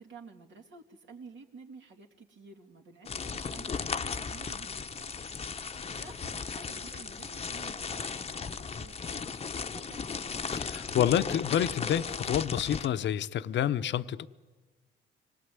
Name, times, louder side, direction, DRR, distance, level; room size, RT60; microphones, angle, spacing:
voice 1, 0.0-5.2 5.6-10.3, right 4 dB, 70° right, 3.0 m, -51 dB
sound 1, 3.1-12.9, left 5 dB, 30° left, 0.9 m, -36 dB
voice 2, 10.5-14.3, left 10 dB, 65° left, 0.8 m, -28 dB
25.0 x 19.5 x 9.6 m
cardioid pair, 90°, 20 cm